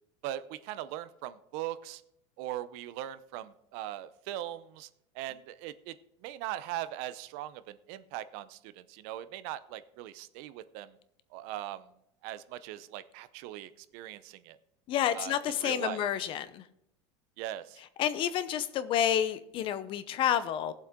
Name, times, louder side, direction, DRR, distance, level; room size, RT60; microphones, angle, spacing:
voice 1, 0.2-2.0 2.4-4.9 5.1-5.9 6.2-11.0 11.3-11.9 12.2-14.6 15.1-16.0 17.4-17.8, right 13 dB, 60° right, 14 dB, 0.6 m, -40 dB
voice 2, 14.9-16.6 18.0-20.7, left 10 dB, 40° left, 14 dB, 0.7 m, -29 dB
17.5 x 7.6 x 3.7 m, 0.77 s
supercardioid pair, 145°, 14 cm